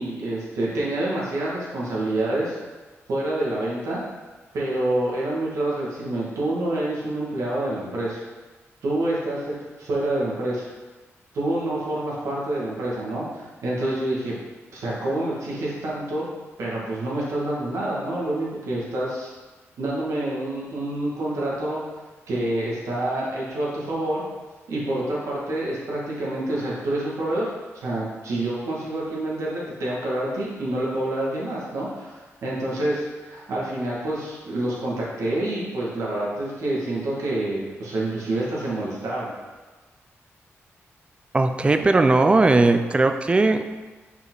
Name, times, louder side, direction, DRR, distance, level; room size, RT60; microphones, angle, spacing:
voice 1, 0.0-2.6 3.1-4.0 4.5-8.2 8.8-10.6 11.3-14.4 14.7-16.2 16.6-19.3 19.8-21.8 22.3-24.2 24.7-39.3, right 1 dB, 85° right, -6 dB, 2.0 m, -27 dB
voice 2, 41.3-43.7, right 3 dB, 20° right, 8 dB, 0.4 m, -18 dB
5.5 x 4.8 x 4.0 m, 1.3 s
wide cardioid pair, 110°, 5 cm